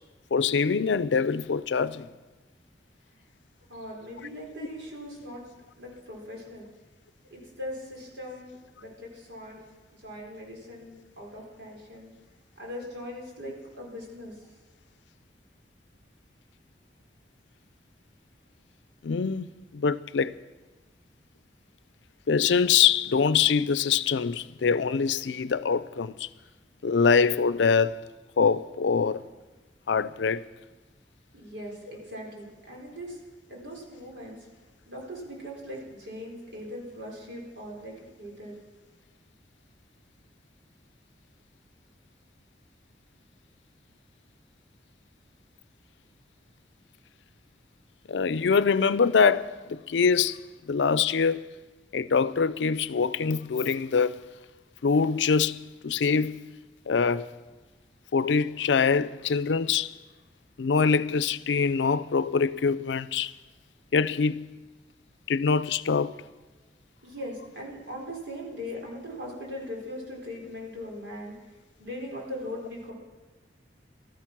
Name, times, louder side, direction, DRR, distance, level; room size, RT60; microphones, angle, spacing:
voice 1, 0.3-2.1 19.0-19.5 19.7-20.3 22.3-26.3 26.8-28.0 28.4-29.2 29.9-30.4 48.1-50.4 50.7-51.5 51.9-54.2 54.8-56.4 56.9-57.3 58.1-60.0 60.6-63.3 63.9-64.5 65.3-66.1, left 5 dB, 85° left, 0.5 m, -24 dB
voice 2, 3.7-5.4 5.8-6.7 7.3-9.6 10.0-12.1 12.6-14.3 31.3-33.2 33.5-34.4 34.9-38.5 67.0-71.3 71.8-72.9, left 1 dB, 90° right, 4.3 m, -40 dB
14.5 x 13.5 x 6.0 m
head